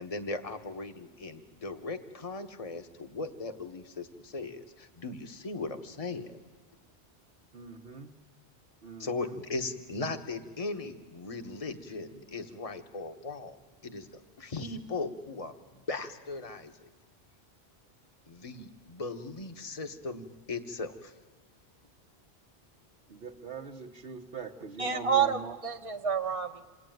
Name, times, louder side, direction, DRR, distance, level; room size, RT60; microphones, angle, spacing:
voice 1, 0.0-6.4 9.0-13.6 13.8-16.9 18.3-21.1, left 3 dB, 35° left, 6 dB, 1.3 m, -38 dB
voice 2, 7.5-8.1 8.8-9.3 23.1-25.5, right 5 dB, 65° right, -2 dB, 1.3 m, -42 dB
voice 3, 24.8-26.6, right 7 dB, 35° right, 6 dB, 1.1 m, -29 dB
27.5 x 19.5 x 9.3 m, 1.4 s
omnidirectional pair, 1.1 m